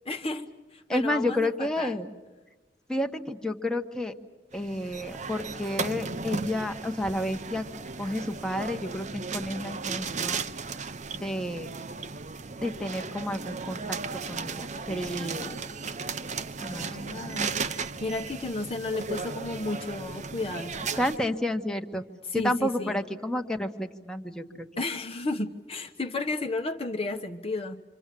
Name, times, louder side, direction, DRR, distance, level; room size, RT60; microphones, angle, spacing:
voice 1, 0.0-1.9 16.6-21.0 22.3-23.0 24.8-27.8, left 2 dB, 35° left, 4 dB, 1.1 m, -33 dB
voice 2, 0.9-2.1 2.9-4.1 4.5-7.7 8.0-10.4 11.2-11.7 12.6-15.6 16.7-17.3 21.0-22.0 22.3-24.7, left 1 dB, 5° left, 4 dB, 1.3 m, -31 dB
sound 1, 4.5-21.2, right 4 dB, 40° right, 0.9 m, -35 dB
27.5 x 26.5 x 7.7 m, 1.2 s
head